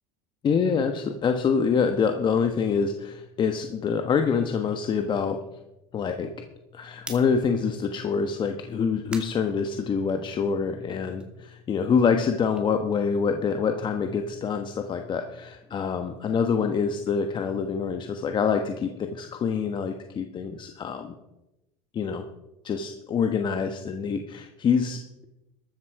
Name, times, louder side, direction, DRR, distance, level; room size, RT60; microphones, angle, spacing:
voice 1, 0.4-5.4 5.9-6.3 6.7-21.1 21.9-22.2 22.6-25.0, left 6 dB, 35° left, 6 dB, 1.3 m, -26 dB
sound 1, 7.0-10.4 10.8-13.7 14.0-18.1, right 1 dB, 5° right, 2.7 m, -50 dB
14.0 x 13.0 x 4.8 m, 0.94 s
supercardioid pair, 115°, 14 cm